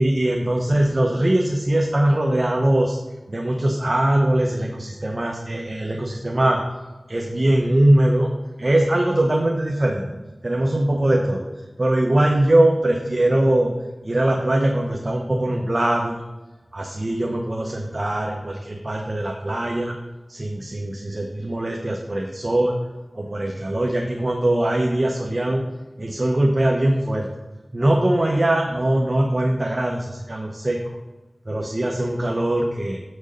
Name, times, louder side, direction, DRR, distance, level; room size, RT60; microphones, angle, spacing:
voice 1, 0.0-3.0 3.3-6.6 7.1-8.3 8.6-11.5 11.8-13.7 14.0-16.2 16.7-20.0 20.3-22.8 23.1-25.7 26.0-27.3 27.7-31.0 31.5-33.0, right 1 dB, 45° right, 1 dB, 1.0 m, -21 dB
7.5 x 6.3 x 5.2 m, 1.2 s
wide cardioid pair, 45°, 0 cm